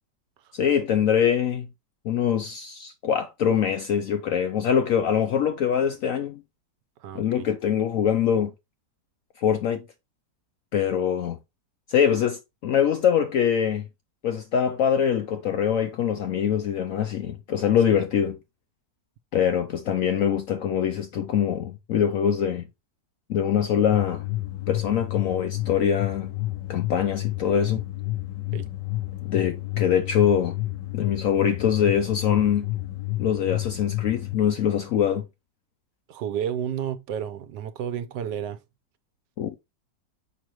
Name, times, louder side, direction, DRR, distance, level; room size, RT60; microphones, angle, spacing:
voice 1, 0.5-1.7 2.0-6.4 7.1-8.5 9.4-9.8 10.7-11.4 11.9-13.9 14.2-18.4 19.3-22.6 23.3-24.3 24.7-26.3 26.7-27.8 29.2-30.6 30.9-32.7 33.2-35.3 39.4-39.6, left 8 dB, 70° left, 0.8 m, -23 dB
voice 2, 7.0-7.5 17.9-18.0 28.5-28.7 36.1-38.6, right 9 dB, 75° right, 1.4 m, -31 dB
sound 1, 23.9-34.4, left 17 dB, 90° left, 1.4 m, -30 dB
6.3 x 5.1 x 3.0 m
omnidirectional pair, 1.9 m